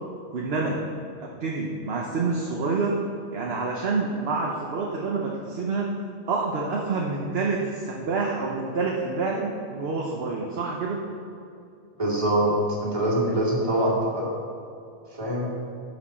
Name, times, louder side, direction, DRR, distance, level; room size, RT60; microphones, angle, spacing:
voice 1, 0.3-0.8 1.2-3.0 3.3-5.9 6.3-11.0, right 4 dB, 50° right, -1 dB, 1.0 m, -27 dB
voice 2, 12.0-12.5 12.8-14.3 15.1-15.5, right 1 dB, 25° right, -7 dB, 2.4 m, -24 dB
11.5 x 6.4 x 4.3 m, 2.6 s
omnidirectional pair, 1.5 m